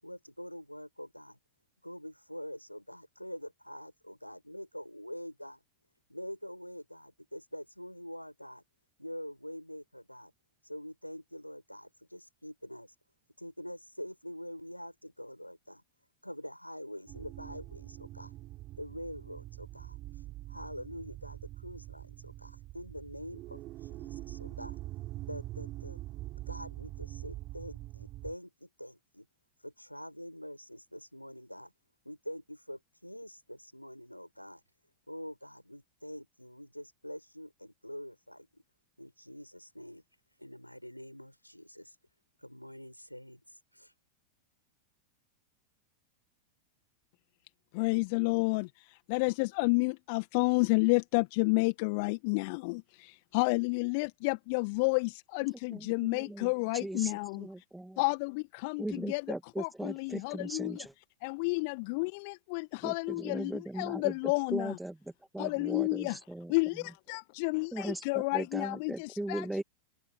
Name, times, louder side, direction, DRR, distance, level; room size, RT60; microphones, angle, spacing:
voice 1, 0.0-1.4 1.8-5.6 6.1-8.6 9.0-10.3 10.6-12.9 13.4-15.8 16.2-18.3 18.8-20.0 20.5-24.8 25.2-26.0 26.5-29.3 29.6-31.7 32.0-34.6 35.1-38.6 39.0-40.0 40.4-41.9 42.4-43.9, equal, 90° left, 7.8 m, -45 dB
sound 1, 17.1-28.3, right 16 dB, 35° right, 3.7 m, -44 dB
voice 2, 47.7-57.5 58.0-60.9 61.2-64.8 65.4-66.2 66.5-69.5, left 30 dB, 45° left, 1.7 m, -31 dB
voice 3, 55.7-58.0 58.8-60.9 62.8-64.1 64.5-65.0 65.3-66.5 67.7-68.0 68.3-69.6, right 1 dB, 5° right, 2.5 m, -38 dB
figure-of-eight pair, 90°, 0 cm